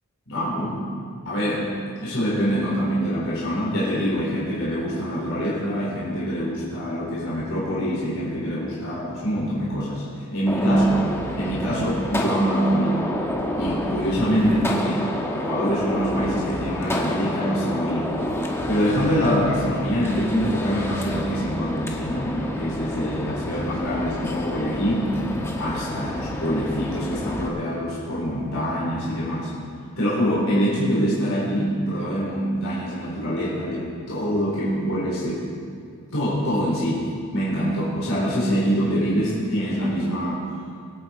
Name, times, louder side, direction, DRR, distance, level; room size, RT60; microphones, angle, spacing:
voice 1, 0.3-0.8 1.2-10.0 10.3-10.8 11.4-13.0 13.6-18.1 18.7-25.1 25.6-29.5 30.0-35.5 36.1-40.4, equal, 65° left, -7 dB, 4.1 m, -25 dB
Gunshot gunfire, 10.5-27.5, left 1 dB, 10° left, 1.2 m, -29 dB
24.0 x 9.5 x 4.5 m, 2.3 s
head